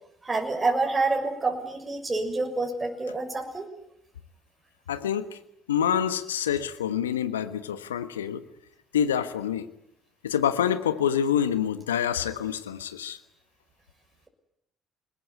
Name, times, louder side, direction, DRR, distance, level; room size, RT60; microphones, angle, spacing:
voice 1, 0.2-3.7, right 3 dB, 25° right, 2 dB, 6.7 m, -27 dB
voice 2, 4.9-5.4 5.7-8.4 8.9-9.7 10.2-13.2, left 9 dB, 85° left, 11 dB, 1.3 m, -26 dB
28.0 x 21.0 x 9.6 m, 0.77 s
hypercardioid pair, 55°, 0 cm